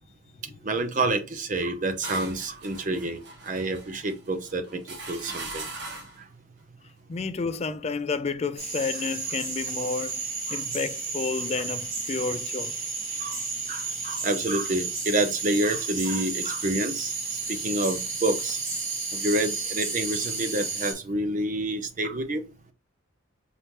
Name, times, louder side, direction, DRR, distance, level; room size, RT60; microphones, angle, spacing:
voice 1, 0.6-4.8 5.1-5.6 10.5-10.6 13.2-13.4 13.7-18.6 19.1-22.4, right 2 dB, 40° right, 0.6 m, -28 dB
sound 1, 1.6-6.3, right 2 dB, 55° right, 1.3 m, -40 dB
voice 2, 7.1-10.2 10.5-12.8, left 4 dB, 30° left, 0.3 m, -30 dB
sound 2, 8.6-20.9, right 4 dB, 75° right, 2.2 m, -32 dB
4.1 x 3.6 x 2.9 m
head